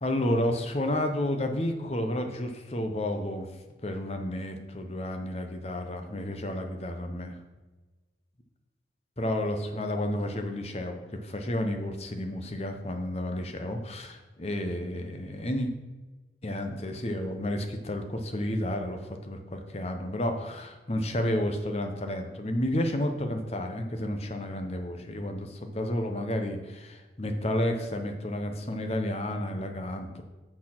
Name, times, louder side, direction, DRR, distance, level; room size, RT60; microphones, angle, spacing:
voice 1, 0.0-3.5 3.8-7.4 9.2-15.7 16.4-30.2, left 1 dB, 35° left, 5 dB, 0.9 m, -31 dB
6.6 x 6.4 x 5.9 m, 1.2 s
head